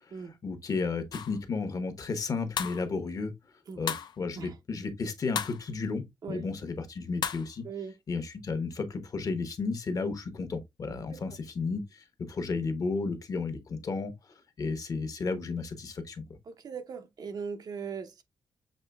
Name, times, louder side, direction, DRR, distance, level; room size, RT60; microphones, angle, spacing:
voice 1, 0.4-3.3 3.7-7.6 8.1-14.1 14.6-16.2, left 4 dB, 50° left, 0.9 m, -33 dB
sound 1, 1.1-1.4 2.5-2.9 3.9-4.2 5.3-5.6 7.2-7.5, left 8 dB, 70° left, 0.5 m, -33 dB
voice 2, 16.5-18.2, right 6 dB, 55° right, 0.6 m, -39 dB
6.4 x 3.1 x 2.2 m
cardioid pair, 95°, 8 cm